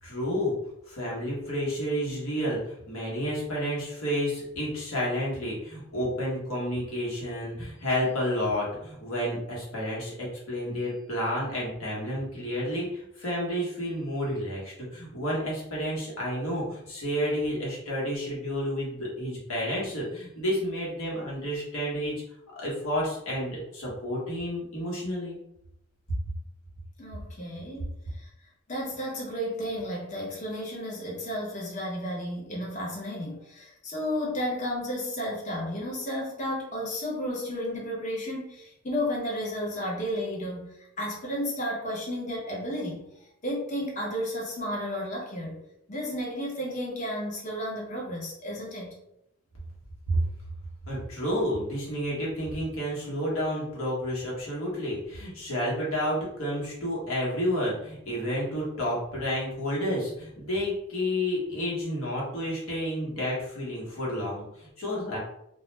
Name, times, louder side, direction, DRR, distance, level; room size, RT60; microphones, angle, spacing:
voice 1, 0.0-0.6 0.9-22.2 22.6-25.4 50.1-50.2 50.9-65.2, equal, 75° left, -5 dB, 1.0 m, -30 dB
voice 2, 27.0-28.3 28.7-45.6 45.9-49.0, equal, 35° left, -3 dB, 0.7 m, -33 dB
2.3 x 2.1 x 3.1 m, 0.80 s
head